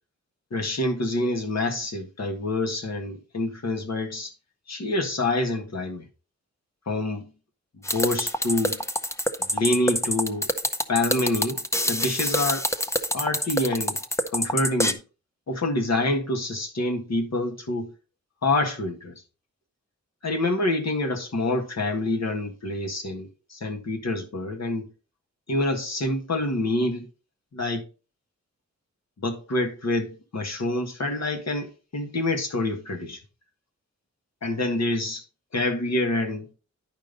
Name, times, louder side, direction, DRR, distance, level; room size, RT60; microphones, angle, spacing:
voice 1, 0.5-4.3 4.7-6.0 6.9-7.3 7.8-8.8 9.4-10.5 10.9-11.6 11.9-12.7 13.1-14.0 14.3-15.0 15.5-17.9 18.4-19.2 20.2-24.8 25.5-27.1 27.5-27.8 29.2-33.2 34.4-35.2 35.5-36.5, left 2 dB, 65° left, 1.8 m, -27 dB
sound 1, 7.8-14.9, equal, 10° left, 0.6 m, -26 dB
10.0 x 5.3 x 3.9 m
wide cardioid pair, 145°, 29 cm